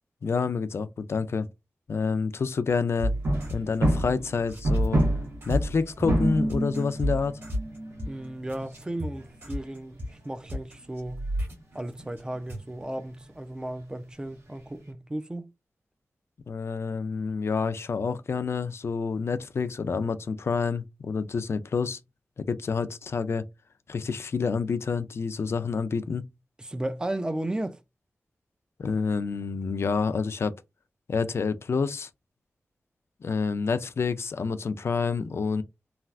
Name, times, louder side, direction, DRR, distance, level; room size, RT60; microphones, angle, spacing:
voice 1, 0.2-1.5 1.9-3.1 3.5-5.0 5.5-7.4 16.5-22.0 22.5-23.4 23.9-26.3 28.8-30.5 31.1-32.1 33.2-35.6, left 5 dB, 60° left, 0.4 m, -28 dB
sound 1, 3.0-4.2 4.5-12.2 12.5-12.6, equal, 55° right, 1.8 m, -31 dB
sound 2, 3.1-10.8 11.1-11.3 11.7-11.8 12.0-12.1 12.3-12.4 12.7-13.0 13.6-13.8 14.2-14.3, right 1 dB, 70° right, 1.3 m, -29 dB
voice 2, 8.1-11.3 11.7-15.5 26.6-27.8, right 1 dB, 15° right, 0.3 m, -34 dB
3.3 x 2.4 x 2.4 m
wide cardioid pair, 110°, 5 cm